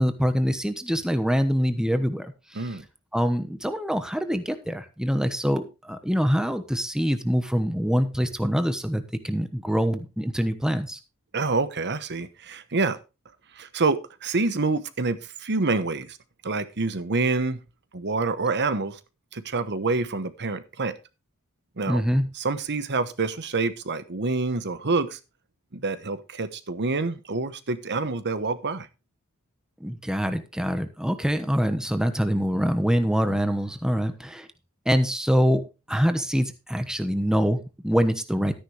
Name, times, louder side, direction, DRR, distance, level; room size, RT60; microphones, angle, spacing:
voice 1, 0.0-2.7 3.1-11.0 21.9-22.3 29.8-34.5 34.8-38.5, equal, 5° right, 9 dB, 1.1 m, -25 dB
voice 2, 11.3-13.0 13.6-16.2 16.4-17.6 17.9-19.0 19.3-20.9 21.8-22.0 22.3-25.2 25.7-28.9, right 3 dB, 50° right, 13 dB, 1.1 m, -27 dB
13.0 x 10.0 x 3.3 m, 0.28 s
head